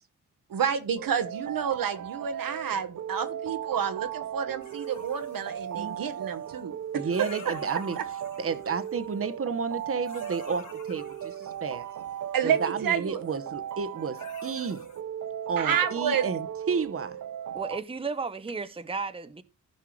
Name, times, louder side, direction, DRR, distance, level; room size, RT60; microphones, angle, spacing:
voice 1, 0.5-7.1 7.4-7.8 12.3-13.2 15.6-16.3, right 7 dB, 80° right, 1.3 m, -29 dB
sound 1, 1.0-17.8, right 10 dB, 60° right, 0.6 m, -37 dB
sound 2, 4.6-6.6 7.1-9.3 9.7-12.5 13.7-13.9 14.1-15.0, left 6 dB, 60° left, 3.3 m, -51 dB
voice 2, 6.9-8.0 8.4-11.9 12.4-14.8 15.5-17.2, right 5 dB, 40° right, 1.0 m, -31 dB
voice 3, 17.5-19.4, right 4 dB, 15° right, 0.8 m, -34 dB
15.5 x 5.5 x 3.2 m
cardioid pair, 95°, 34 cm